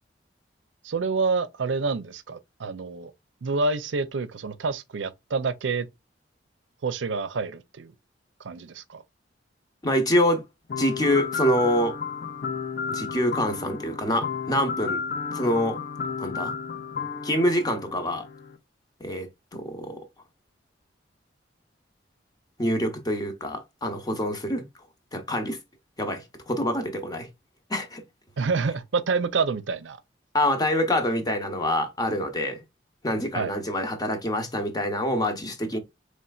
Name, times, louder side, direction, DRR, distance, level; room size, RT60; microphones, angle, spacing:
voice 1, 0.8-3.1 3.4-5.9 6.8-7.9 8.4-9.0 28.4-30.0 33.3-33.5, right 4 dB, 80° right, 0.5 m, -28 dB
voice 2, 9.8-10.4 10.8-11.9 12.9-15.0 15.3-15.8 16.2-16.5 17.2-18.3 19.0-20.0 22.6-24.6 25.1-25.6 26.0-27.3 27.7-28.0 30.3-32.6 33.0-35.8, equal, 20° left, 0.8 m, -26 dB
sound 1, 10.7-18.6, left 5 dB, 50° left, 0.5 m, -33 dB
4.3 x 3.2 x 2.3 m
head